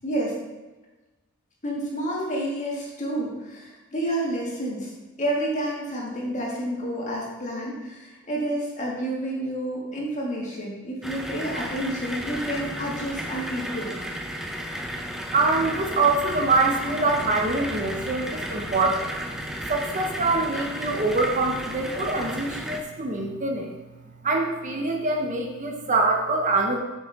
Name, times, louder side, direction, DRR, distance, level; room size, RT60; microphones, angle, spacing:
voice 1, 0.0-0.4 1.6-4.9 5.2-14.0, right 1 dB, 35° left, -4 dB, 2.0 m, -29 dB
sound 1, 11.0-22.8, equal, ahead, 0.6 m, -33 dB
voice 2, 15.3-19.1 19.7-23.7 24.2-26.8, right 3 dB, 35° right, 2 dB, 0.8 m, -24 dB
8.4 x 6.2 x 3.6 m, 1.1 s
head